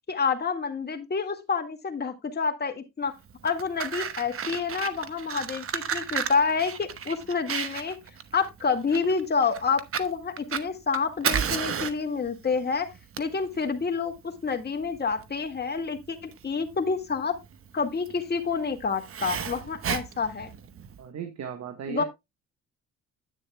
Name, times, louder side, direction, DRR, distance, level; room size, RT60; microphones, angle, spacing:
voice 1, 0.1-3.2 3.4-8.0 8.3-12.9 13.2-17.4 17.7-20.5 21.9-22.0, left 5 dB, 35° left, 4 dB, 1.9 m, -28 dB
Fire, 3.3-21.0, right 7 dB, 45° right, 1.0 m, -34 dB
voice 2, 21.0-22.0, right 8 dB, 65° right, 7 dB, 1.3 m, -36 dB
10.0 x 9.1 x 2.2 m, 0.22 s
cardioid pair, 90°, 30 cm